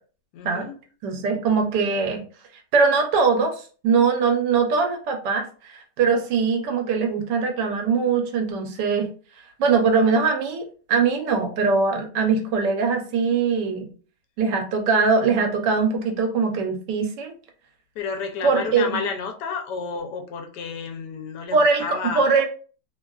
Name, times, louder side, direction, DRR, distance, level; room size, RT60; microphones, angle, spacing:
voice 1, 0.3-0.7 13.7-13.9 18.0-22.5, left 5 dB, 80° left, 1.2 m, -31 dB
voice 2, 1.0-2.2 2.7-9.1 9.6-13.9 14.4-17.3 18.4-19.0 21.5-22.5, right 5 dB, 85° right, 1.4 m, -21 dB
3.2 x 2.3 x 2.3 m
omnidirectional pair, 1.8 m